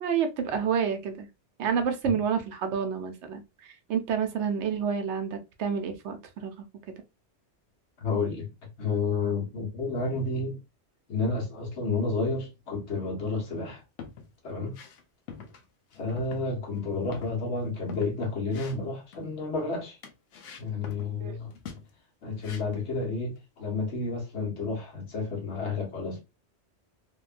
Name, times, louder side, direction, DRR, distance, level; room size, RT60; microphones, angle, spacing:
voice 1, 0.0-1.3 1.6-3.4 3.9-6.5 21.2-21.4, right 7 dB, 75° right, 0.9 m, -29 dB
voice 2, 8.0-8.5 8.8-10.6 11.1-13.8 14.4-14.7 16.0-20.0 20.6-21.5 22.2-26.2, left 3 dB, 70° left, 1.2 m, -31 dB
sound 1, 13.8-14.3 14.7-15.0 15.3-15.7 15.9-16.5 16.7-16.8 17.1-18.2 18.5-19.3 20.0-21.2 21.5-21.9 22.4-22.9, left 6 dB, 90° left, 1.0 m, -45 dB
2.8 x 2.2 x 2.4 m
omnidirectional pair, 1.2 m